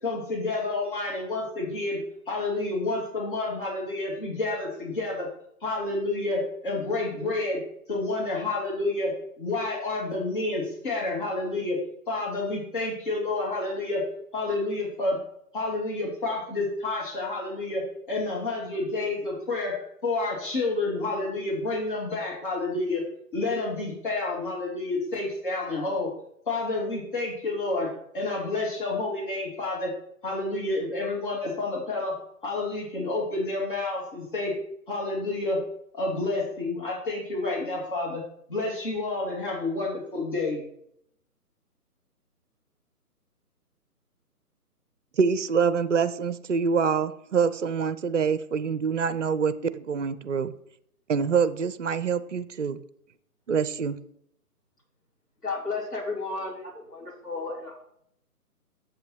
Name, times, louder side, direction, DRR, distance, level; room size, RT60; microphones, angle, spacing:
voice 1, 0.0-2.0 2.3-5.3 5.6-7.6 7.9-11.8 12.1-14.0 14.3-15.2 15.5-19.8 20.0-23.0 23.3-26.1 26.5-27.9 28.1-29.9 30.2-32.1 32.4-34.5 34.9-35.6 35.9-38.2 38.5-40.6, left 2 dB, 35° left, -4 dB, 2.5 m, -29 dB
voice 2, 45.2-50.5 51.1-52.8 53.5-54.0, right 6 dB, 50° right, 14 dB, 0.6 m, -25 dB
voice 3, 55.4-57.8, left 3 dB, 80° left, -1 dB, 3.4 m, -33 dB
7.5 x 5.8 x 5.7 m, 0.72 s
figure-of-eight pair, 145°, 47 cm